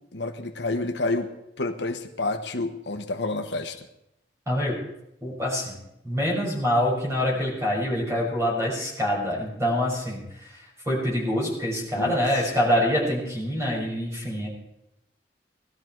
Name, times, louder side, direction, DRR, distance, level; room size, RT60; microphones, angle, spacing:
voice 1, 0.1-3.9 11.9-12.5, left 2 dB, 80° left, 6 dB, 1.2 m, -29 dB
voice 2, 4.5-4.8 5.2-5.7 6.0-10.5 10.8-14.5, equal, 15° right, -3 dB, 6.3 m, -25 dB
19.5 x 13.0 x 4.6 m, 0.84 s
head